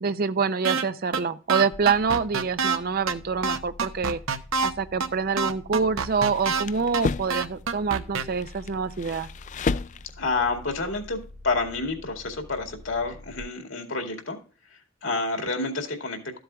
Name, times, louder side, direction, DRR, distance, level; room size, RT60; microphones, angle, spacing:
voice 1, 0.0-4.2 4.6-9.3, right 5 dB, 50° right, 0.5 m, -26 dB
sound 1, 0.6-0.8 1.1-1.2 1.5-2.8 3.1-3.2 3.4-4.7 5.0-5.1 5.4-6.6 6.9-7.0 7.3-8.2, right 5 dB, 85° right, 0.9 m, -26 dB
sound 2, 1.7-13.4, left 1 dB, 25° right, 1.0 m, -46 dB
sound 3, 6.0-7.5 8.2-10.4, left 4 dB, 40° left, 0.3 m, -31 dB
voice 2, 10.2-11.2 11.4-14.4 14.7-16.4, left 3 dB, 70° left, 2.2 m, -29 dB
13.5 x 7.9 x 2.3 m
head